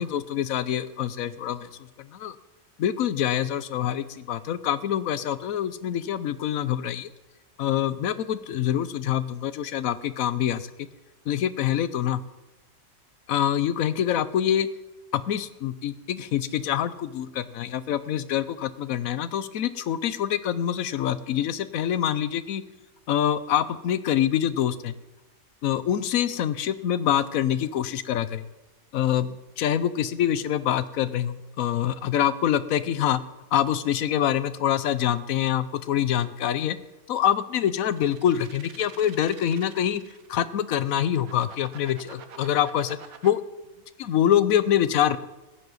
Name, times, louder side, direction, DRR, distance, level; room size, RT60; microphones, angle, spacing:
voice 1, 0.0-1.7 2.0-2.4 2.8-7.1 7.6-10.9 11.3-12.2 13.3-14.7 15.1-22.6 23.1-24.9 25.6-28.4 28.9-33.2 33.5-36.8 37.1-40.0 40.3-43.4 44.0-45.2, left 10 dB, 80° left, 15 dB, 1.1 m, -25 dB
sound 1, 37.8-40.3 40.8-43.3, right 7 dB, 90° right, 1.4 m, -46 dB
15.0 x 10.5 x 4.0 m, 1.1 s
omnidirectional pair, 1.4 m